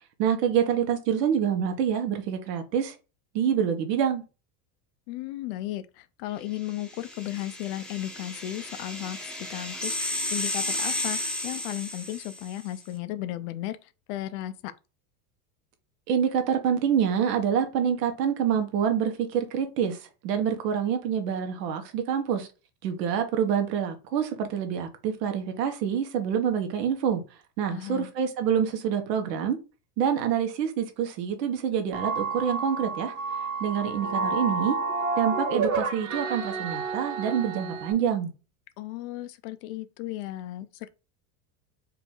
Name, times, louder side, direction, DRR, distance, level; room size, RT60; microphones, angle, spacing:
voice 1, 0.2-2.9 3.3-4.2 16.1-22.5 22.8-27.2 27.6-29.6 30.0-33.1 33.6-34.8 35.2-38.3, right 8 dB, 85° right, 1.4 m, -26 dB
voice 2, 5.1-14.7 27.7-28.1 38.8-40.9, left 14 dB, 50° left, 0.6 m, -35 dB
sound 1, 6.7-12.6, left 1 dB, ahead, 0.4 m, -33 dB
sound 2, 31.9-37.9, right 4 dB, 40° right, 1.1 m, -30 dB
4.7 x 3.0 x 3.7 m
supercardioid pair, 150°, 48 cm